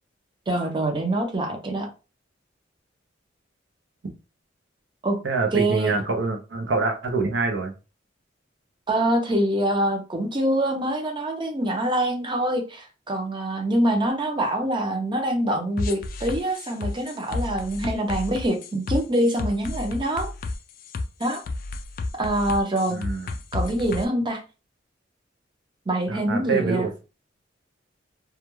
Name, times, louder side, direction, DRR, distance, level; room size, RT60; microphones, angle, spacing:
voice 1, 0.5-1.9 5.0-5.2 5.5-6.0 8.9-20.3 21.2-21.4 22.2-23.0 23.5-24.4 25.9-26.9, right 1 dB, 25° right, 0.6 m, -25 dB
voice 2, 5.2-7.7 22.9-23.3 26.1-26.9, right 3 dB, 75° right, 0.6 m, -25 dB
sound 1, 15.8-24.0, left 2 dB, 50° left, 0.3 m, -31 dB
2.3 x 2.2 x 3.0 m
head